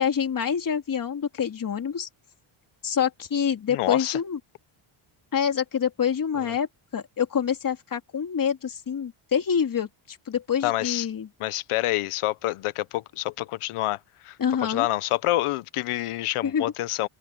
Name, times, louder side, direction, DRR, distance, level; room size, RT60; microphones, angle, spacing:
voice 1, 0.0-2.1 2.8-4.4 5.3-6.7 6.9-11.3 14.4-14.9 16.4-16.6, left 7 dB, 40° left, 3.5 m, -26 dB
voice 2, 3.7-4.2 6.4-6.5 10.6-11.1 11.4-17.1, left 16 dB, 80° left, 1.0 m, -27 dB
cardioid pair, 145°, 50 cm